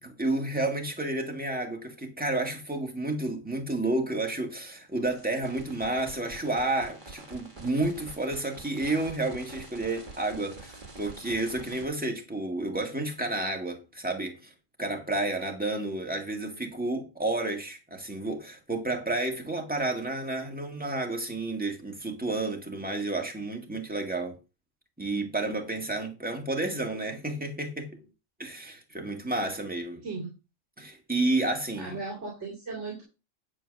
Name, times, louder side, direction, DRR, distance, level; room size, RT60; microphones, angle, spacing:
voice 1, 0.0-14.5 14.8-24.4 25.0-28.1 28.4-30.0 30.8-32.0, right 2 dB, 5° right, 1.9 m, -31 dB
sound 1, 5.1-11.8, right 3 dB, 40° right, 1.9 m, -46 dB
voice 2, 31.8-33.0, right 3 dB, 65° right, 3.0 m, -36 dB
10.0 x 4.5 x 6.6 m
omnidirectional pair, 1.3 m